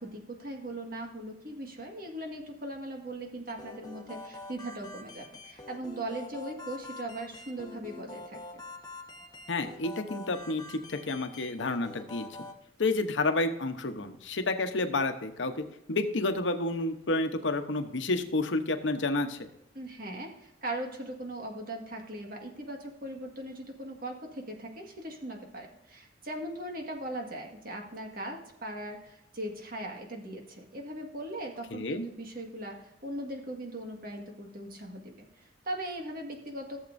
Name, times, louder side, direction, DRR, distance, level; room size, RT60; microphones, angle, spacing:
voice 1, 0.0-8.4 19.7-36.8, right 1 dB, 50° right, 2 dB, 1.7 m, -39 dB
sound 1, 3.5-12.5, left 2 dB, 20° left, 1.3 m, -46 dB
voice 2, 9.5-12.3 12.8-15.6 15.9-19.4 31.7-32.1, left 2 dB, 80° left, 7 dB, 0.9 m, -30 dB
15.0 x 7.3 x 2.6 m, 0.83 s
head